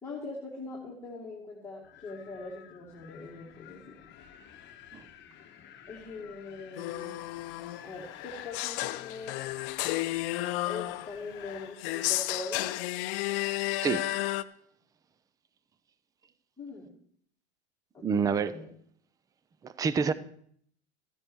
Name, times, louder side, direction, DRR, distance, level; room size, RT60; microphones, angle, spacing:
voice 1, 0.0-4.0 5.9-7.2 7.8-9.4 10.7-12.8 16.6-17.0 17.9-18.7, left 3 dB, 10° left, 2.0 m, -42 dB
Wind, 1.8-11.8, left 10 dB, 35° left, 1.2 m, -52 dB
sound 1, 6.8-14.4, left 17 dB, 60° left, 0.7 m, -33 dB
voice 2, 18.0-18.5 19.6-20.1, right 6 dB, 10° right, 0.4 m, -27 dB
14.5 x 9.8 x 4.6 m
supercardioid pair, 135°, 32 cm